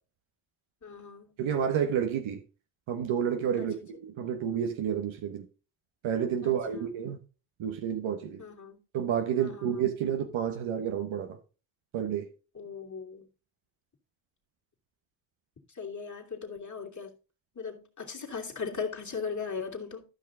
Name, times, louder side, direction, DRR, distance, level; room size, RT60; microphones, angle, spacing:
voice 1, 0.8-1.3 3.5-3.8 6.4-6.9 8.4-8.8 9.4-9.9 12.5-13.3 15.7-17.1 17.5-20.1, left 5 dB, 40° left, 2.8 m, -38 dB
voice 2, 1.4-2.4 2.9-5.4 6.0-7.2 7.6-8.4 8.9-11.4 11.9-12.3, right 8 dB, 90° right, 1.3 m, -30 dB
13.0 x 5.8 x 3.8 m
cardioid pair, 60°, 46 cm